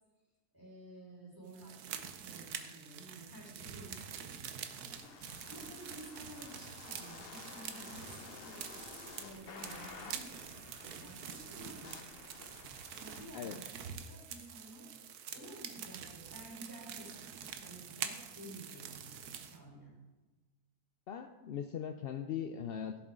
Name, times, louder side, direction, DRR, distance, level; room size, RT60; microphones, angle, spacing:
voice 1, 0.5-1.9 2.2-8.6 8.8-12.6 12.9-13.6 13.9-14.9 15.3-19.9, right 1 dB, 15° right, -6 dB, 3.7 m, -52 dB
sound 1, 1.5-19.6, right 8 dB, 85° right, 1.3 m, -46 dB
sound 2, 4.9-13.3, left 5 dB, 50° left, 0.9 m, -52 dB
voice 2, 21.1-23.1, left 8 dB, 75° left, 7 dB, 0.5 m, -40 dB
15.5 x 7.1 x 3.7 m, 1.2 s
omnidirectional pair, 1.6 m